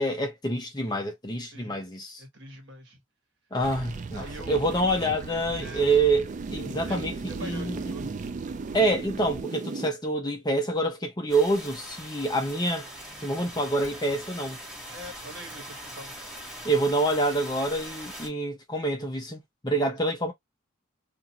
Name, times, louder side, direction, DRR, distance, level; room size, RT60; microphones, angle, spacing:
voice 1, 0.0-2.2 3.5-8.0 8.7-12.9 13.2-14.6 16.6-20.3, right 2 dB, 20° left, 0.6 m, -27 dB
voice 2, 2.2-3.0 4.1-4.6 5.6-5.9 6.8-8.1 14.9-16.1 19.8-20.0, right 1 dB, 55° right, 1.4 m, -44 dB
sound 1, 3.6-9.9, right 4 dB, 35° right, 0.3 m, -36 dB
sound 2, 11.3-18.3, equal, 5° right, 1.1 m, -42 dB
2.6 x 2.5 x 2.8 m
head